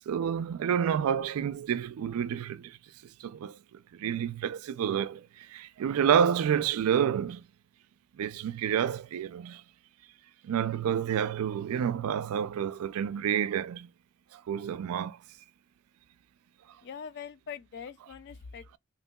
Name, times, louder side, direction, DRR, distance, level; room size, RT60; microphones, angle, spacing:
voice 1, 0.1-2.8 3.2-7.4 8.2-9.6 10.4-13.9 14.3-15.2, right 8 dB, 85° right, 0.3 m, -29 dB
voice 2, 16.8-18.8, left 7 dB, 50° left, 0.3 m, -43 dB
2.9 x 2.7 x 2.2 m
head